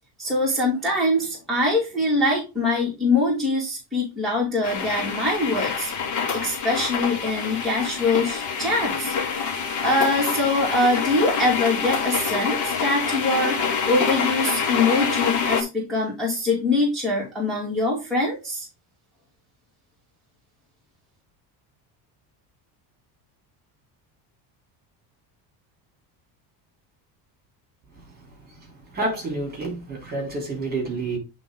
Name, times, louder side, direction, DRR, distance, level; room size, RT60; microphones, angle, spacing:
voice 1, 0.2-5.9 6.3-9.2 9.8-13.6 13.9-18.7, left 2 dB, ahead, 2.3 m, -23 dB
sound 1, 4.6-15.6, left 6 dB, 45° left, 1.5 m, -26 dB
voice 2, 28.9-31.2, right 2 dB, 20° right, 3.0 m, -28 dB
8.9 x 3.8 x 3.6 m
cardioid pair, 165°, 43 cm